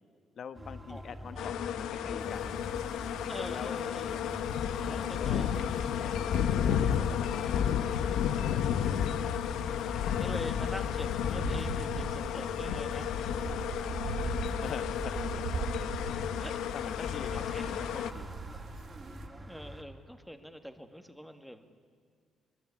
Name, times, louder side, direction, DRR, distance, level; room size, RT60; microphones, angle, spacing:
voice 1, 0.4-2.5 3.4-3.9 4.9-6.5 7.1-8.9 13.3-13.5 13.8-14.0 14.6-15.4 16.7-18.4, left 7 dB, 55° left, 12 dB, 1.3 m, -44 dB
sound 1, 0.5-19.8, right 1 dB, 15° right, 3.1 m, -46 dB
sound 2, 1.4-18.1, left 9 dB, 85° left, 0.9 m, -32 dB
sound 3, 2.2-19.3, right 6 dB, 65° right, 2.0 m, -43 dB
voice 2, 3.3-4.2 4.8-5.6 7.4-7.7 9.4-13.2 15.1-15.3 15.6-15.7 16.4-16.6 17.0-17.7 19.5-21.7, equal, ahead, 8 dB, 2.0 m, -45 dB
23.5 x 21.5 x 8.6 m, 2.2 s
cardioid pair, 90°, 0 cm